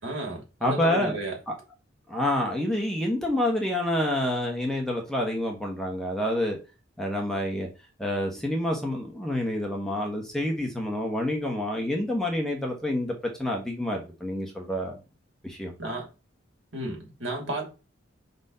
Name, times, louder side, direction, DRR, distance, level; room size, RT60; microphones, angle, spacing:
voice 1, 0.0-1.3 15.8-16.1 16.7-17.7, right 1 dB, 70° right, 2.9 m, -32 dB
voice 2, 0.6-1.1 1.5-1.6 2.1-6.6 7.0-7.7 8.0-15.0 15.4-15.7, left 1 dB, 5° left, 1.2 m, -28 dB
5.3 x 4.1 x 5.5 m
head